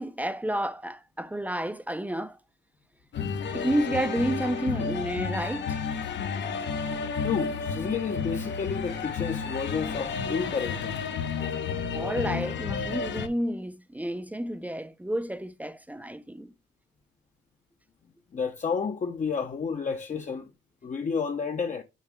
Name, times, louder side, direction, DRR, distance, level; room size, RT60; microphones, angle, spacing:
voice 1, 0.0-2.4 3.5-5.8 11.9-16.5, right 1 dB, 10° right, 0.6 m, -30 dB
sound 1, 3.1-13.3, left 6 dB, 65° left, 1.4 m, -31 dB
voice 2, 7.2-11.0 18.3-20.5 20.8-21.8, left 5 dB, 40° left, 1.0 m, -31 dB
6.6 x 4.3 x 3.5 m
cardioid pair, 90°, 20 cm